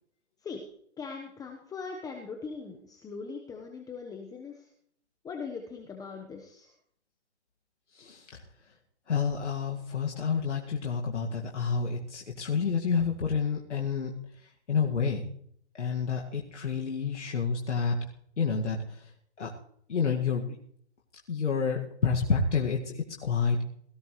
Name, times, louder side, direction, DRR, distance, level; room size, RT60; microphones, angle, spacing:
voice 1, 1.0-4.7 5.2-6.7, left 5 dB, 10° left, 2 dB, 1.2 m, -40 dB
voice 2, 8.0-8.3 9.1-14.1 14.7-15.3 15.8-18.0 18.4-19.1 19.4-19.5 19.9-20.6 21.3-23.6, left 5 dB, 90° left, -1 dB, 2.2 m, -29 dB
18.5 x 15.0 x 3.3 m, 0.66 s
hypercardioid pair, 140°, 34 cm